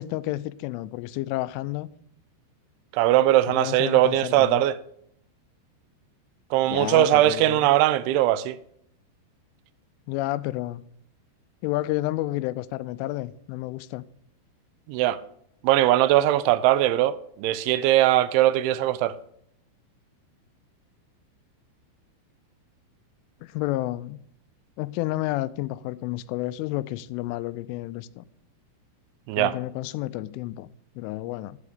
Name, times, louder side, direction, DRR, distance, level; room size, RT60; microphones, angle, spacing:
voice 1, 0.0-1.9 3.5-4.6 6.7-7.6 10.1-10.8 11.6-14.0 23.4-24.2 24.8-28.2 29.4-30.7 31.0-31.6, left 17 dB, 90° left, 3.1 m, -30 dB
voice 2, 2.9-4.8 6.5-8.6 14.9-15.2 15.6-19.1 29.3-29.6, right 14 dB, 85° right, 2.9 m, -20 dB
13.0 x 7.0 x 5.0 m
omnidirectional pair, 5.5 m